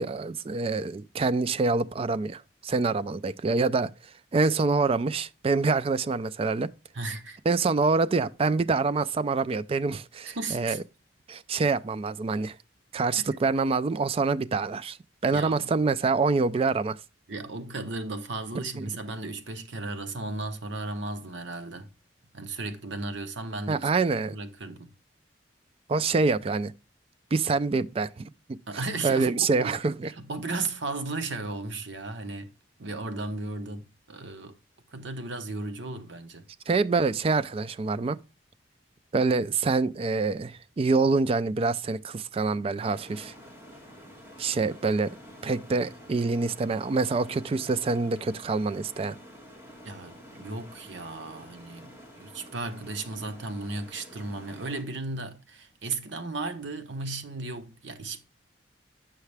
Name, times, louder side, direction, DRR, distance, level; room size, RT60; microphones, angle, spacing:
voice 1, 0.0-3.9 4.3-6.7 7.5-10.8 11.3-12.6 12.9-15.0 15.2-17.0 18.8-18.9 23.7-24.4 25.9-26.7 27.3-28.6 29.0-30.1 36.7-38.2 39.1-43.3 44.4-45.1 45.4-49.2, right 4 dB, 30° right, 0.3 m, -26 dB
voice 2, 6.9-7.4 10.2-10.8 13.2-13.3 15.3-15.7 17.3-21.9 22.3-23.9 24.3-24.9 28.7-29.7 30.2-32.5 32.8-34.5 34.9-36.4 49.8-58.2, right 3 dB, 70° right, 0.9 m, -35 dB
sound 1, 42.8-54.8, equal, 10° right, 2.1 m, -49 dB
8.1 x 5.7 x 3.3 m
head